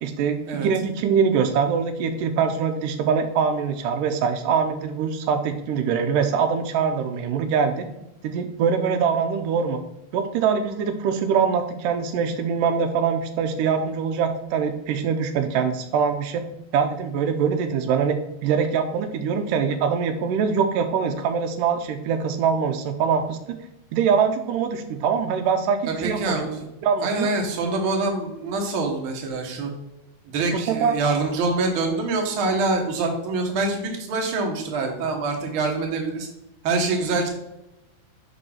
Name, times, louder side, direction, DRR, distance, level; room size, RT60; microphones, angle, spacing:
voice 1, 0.0-7.9 8.2-9.8 10.1-16.5 16.7-18.2 18.4-23.6 23.9-26.3 26.8-27.3 30.5-31.0, right 6 dB, 85° right, 6 dB, 2.3 m, -23 dB
voice 2, 25.8-26.7 27.0-29.7 30.2-36.3 36.6-37.3, right 3 dB, 55° right, 2 dB, 1.6 m, -25 dB
5.4 x 5.3 x 5.6 m, 0.91 s
omnidirectional pair, 3.7 m